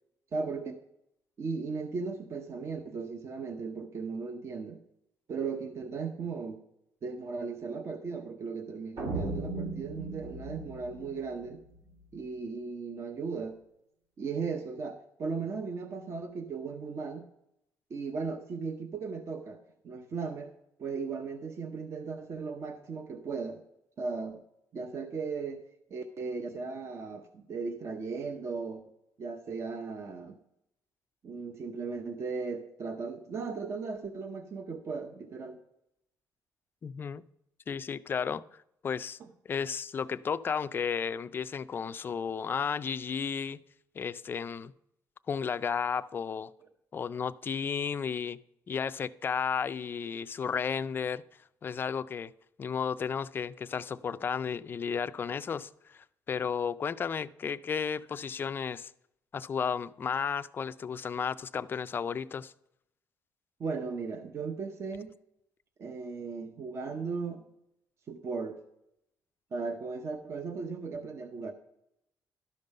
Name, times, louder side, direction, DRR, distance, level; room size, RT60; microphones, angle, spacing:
voice 1, 0.3-0.8 1.4-4.8 5.3-6.6 7.0-11.6 12.1-13.6 14.2-17.3 17.9-19.6 19.8-20.5 20.8-23.6 24.0-24.4 24.7-25.6 25.9-28.8 29.2-30.4 31.2-35.6 63.6-65.1 65.8-67.4 68.1-68.6 69.5-71.5, right 4 dB, 40° right, 0.7 m, -37 dB
sound 1, 9.0-12.1, right 2 dB, 65° right, 2.3 m, -37 dB
voice 2, 36.8-37.2 37.7-38.4 38.8-39.2 39.5-43.6 44.0-44.7 45.3-46.5 46.9-48.4 48.7-51.2 51.6-52.3 52.6-58.9 59.3-62.5, left 6 dB, 30° left, 0.3 m, -33 dB
12.0 x 5.3 x 5.3 m
cardioid pair, 140°, 7 cm